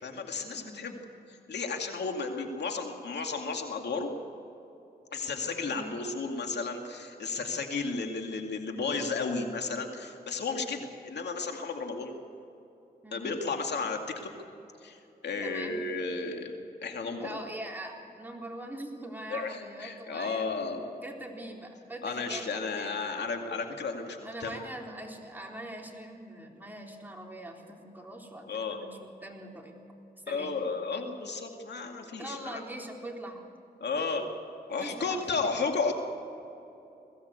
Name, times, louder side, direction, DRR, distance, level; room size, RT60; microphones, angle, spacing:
voice 1, 0.0-1.0 1.3-4.1 5.1-12.1 13.1-14.3 14.8-16.5 16.8-17.4 19.3-20.9 22.0-24.6 28.5-28.8 30.3-32.6 33.8-34.2 34.7-35.9, left 4 dB, 80° left, 3 dB, 2.3 m, -33 dB
voice 2, 0.6-1.0 5.7-6.0 13.0-13.3 15.4-15.8 17.2-20.6 20.9-23.2 24.2-29.7 30.3-30.5 32.2-33.5 34.0-34.3 34.8-35.5, right 1 dB, 10° right, 0 dB, 3.9 m, -42 dB
21.5 x 16.5 x 8.2 m, 2.9 s
cardioid pair, 65°, 17 cm